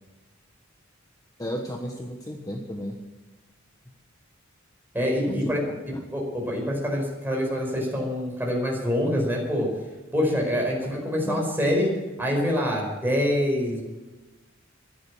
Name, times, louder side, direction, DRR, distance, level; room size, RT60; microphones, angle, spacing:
voice 1, 1.4-3.0 5.3-5.5 10.8-10.9 11.2-11.5, equal, 20° left, 1 dB, 1.3 m, -33 dB
voice 2, 4.9-5.6 6.1-9.7 10.1-11.9 12.2-13.8, equal, 10° right, -1 dB, 5.1 m, -25 dB
14.0 x 10.5 x 8.5 m, 1.2 s
head